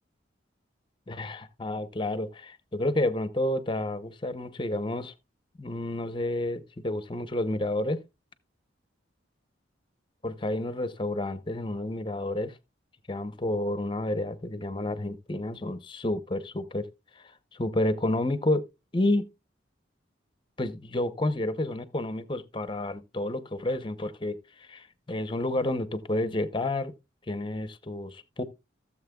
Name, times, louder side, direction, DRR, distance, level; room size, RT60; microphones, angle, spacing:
voice 1, 1.1-5.1 5.6-8.0 10.2-12.6 13.1-16.9 17.2-18.6 18.9-19.3 20.6-26.9 27.3-28.4, left 1 dB, 25° left, 0.7 m, -30 dB
16.5 x 7.4 x 2.3 m
head